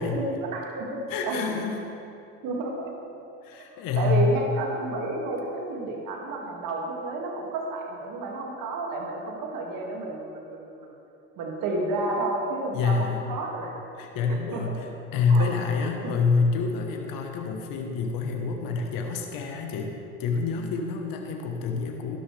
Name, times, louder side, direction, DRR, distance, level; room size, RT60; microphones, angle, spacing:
voice 1, 0.0-1.5 2.4-2.9 3.6-10.9 11.4-13.7 14.3-14.6 15.3-15.5 15.8-15.9, right 2 dB, 65° right, -1 dB, 2.3 m, -31 dB
voice 2, 1.1-1.8 3.4-4.4 12.7-13.2 14.0-22.2, left 4 dB, 70° left, 2 dB, 1.3 m, -27 dB
12.5 x 11.5 x 3.4 m, 2.8 s
hypercardioid pair, 65°, 35 cm